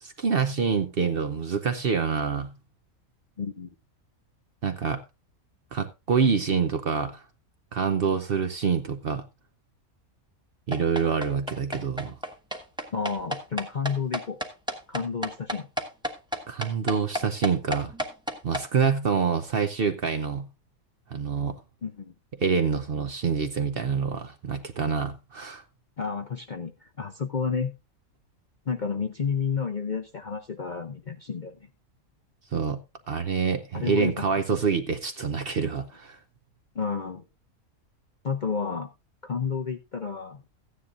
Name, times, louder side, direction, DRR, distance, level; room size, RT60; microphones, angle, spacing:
voice 1, 0.0-2.5 4.6-5.0 5.7-7.2 7.7-9.2 10.7-12.2 16.5-17.9 18.4-20.5 21.1-21.6 22.4-25.6 32.5-32.8 33.1-36.2, right 6 dB, 50° right, 0.8 m, -26 dB
voice 2, 3.4-3.7 12.9-14.4 14.9-15.7 21.8-22.1 26.0-27.7 28.7-31.7 33.7-34.3 36.7-37.2 38.2-38.9 39.2-40.4, left 6 dB, 45° left, 0.6 m, -31 dB
sound 1, 10.7-18.6, equal, 5° right, 1.0 m, -31 dB
15.0 x 9.8 x 2.5 m
omnidirectional pair, 1.5 m